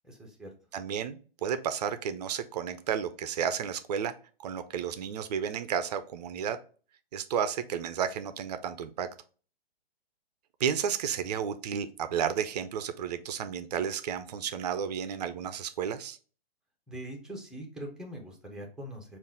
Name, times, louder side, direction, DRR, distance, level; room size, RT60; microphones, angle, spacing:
voice 1, 0.0-0.5 16.9-19.2, right 1 dB, ahead, 0 dB, 0.8 m, -42 dB
voice 2, 0.7-4.1 4.4-6.6 7.1-9.1 10.6-16.2, right 8 dB, 45° right, 11 dB, 0.5 m, -32 dB
5.4 x 2.5 x 3.6 m, 0.39 s
hypercardioid pair, 135°, 30 cm